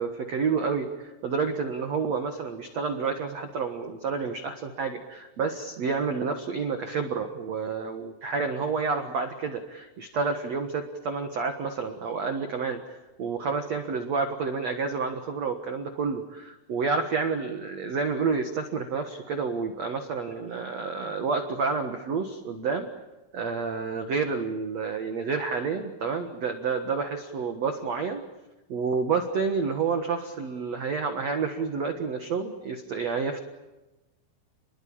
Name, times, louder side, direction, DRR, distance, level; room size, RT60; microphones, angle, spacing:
voice 1, 0.0-12.8 13.2-22.9 23.3-28.2 28.7-33.4, right 5 dB, 85° right, 6 dB, 1.5 m, -29 dB
30.0 x 22.0 x 8.7 m, 1.1 s
omnidirectional pair, 5.6 m